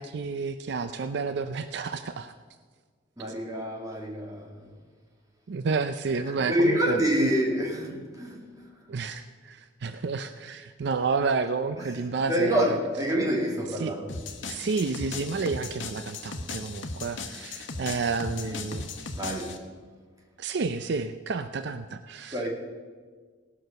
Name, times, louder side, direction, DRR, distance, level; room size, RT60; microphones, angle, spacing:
voice 1, 0.0-2.3 3.2-3.3 5.5-7.3 8.9-12.8 13.8-13.9 14.5-19.1 20.4-22.5, right 4 dB, 65° right, 0.5 m, -30 dB
voice 2, 3.2-4.7 6.5-8.5 11.8-11.9 12.3-14.2 19.2-19.6 22.3-22.5, equal, 20° right, 2.0 m, -27 dB
sound 1, 14.1-19.6, left 3 dB, 80° left, 1.1 m, -37 dB
18.0 x 6.2 x 6.5 m
head